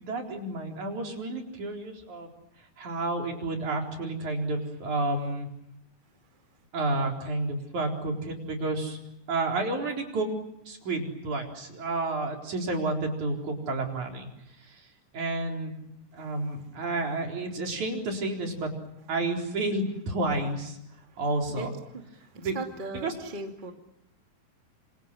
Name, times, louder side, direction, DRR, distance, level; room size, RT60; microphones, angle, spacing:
voice 1, 0.0-2.3 2.8-5.5 6.7-9.0 9.3-10.3 10.7-14.9 15.1-18.7 19.1-20.8 21.2-21.7 22.4-22.6 22.9-23.1, right 2 dB, 50° right, 2 dB, 5.5 m, -31 dB
voice 2, 22.3-23.7, right 2 dB, 15° right, 3 dB, 1.9 m, -37 dB
27.5 x 27.0 x 7.7 m, 0.83 s
omnidirectional pair, 4.4 m